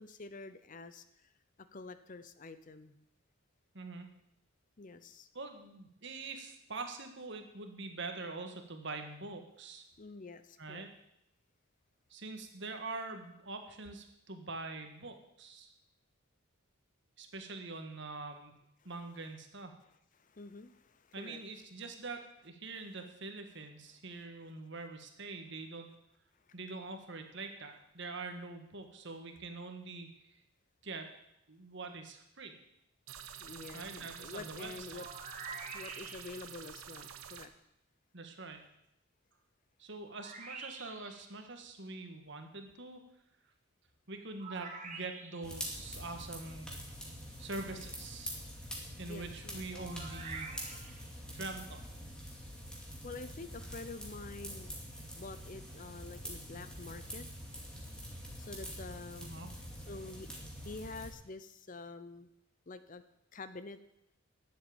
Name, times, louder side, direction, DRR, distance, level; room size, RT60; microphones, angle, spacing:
voice 1, 0.0-1.3 1.7-3.0 4.8-5.3 10.0-10.9 18.8-18.9 20.2-21.4 33.4-35.1 35.7-37.5 49.1-49.6 52.7-54.7 55.1-57.3 58.4-59.4 59.9-60.3 60.6-62.3 62.7-63.0 63.3-63.8, left 3 dB, 40° left, 12 dB, 0.6 m, -47 dB
voice 2, 3.7-4.1 5.3-9.8 10.6-10.9 12.1-15.7 17.2-18.5 18.8-19.7 21.1-25.9 26.5-30.4 30.8-31.1 31.5-32.6 33.7-35.0 38.1-38.6 39.8-43.0 44.1-46.7 47.4-48.3 48.9-50.5 51.3-51.8 59.2-59.5, right 3 dB, 55° right, 5 dB, 1.7 m, -44 dB
sound 1, 33.1-37.5, right 8 dB, 80° right, 1.1 m, -49 dB
sound 2, 34.9-36.6 40.1-41.3 44.4-45.6 49.7-51.1, right 4 dB, 35° right, 1.6 m, -46 dB
sound 3, 45.4-61.1, equal, 5° left, 2.3 m, -45 dB
11.0 x 7.5 x 8.8 m, 0.80 s
head